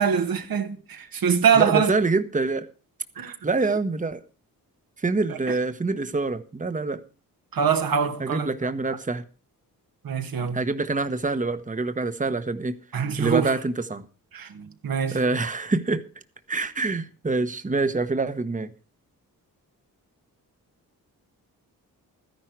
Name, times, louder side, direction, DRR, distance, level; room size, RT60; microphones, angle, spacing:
voice 1, 0.0-1.9 3.2-3.4 7.5-8.5 8.9-9.0 10.0-10.6 12.9-13.5 14.3-15.2, right 7 dB, 75° right, 1.9 m, -23 dB
voice 2, 1.5-2.7 3.4-4.2 5.0-7.0 8.2-9.2 10.5-12.8 13.2-14.0 15.1-16.0 16.5-18.7, right 3 dB, 20° right, 1.2 m, -25 dB
13.5 x 10.5 x 4.7 m
cardioid pair, 80°, 35 cm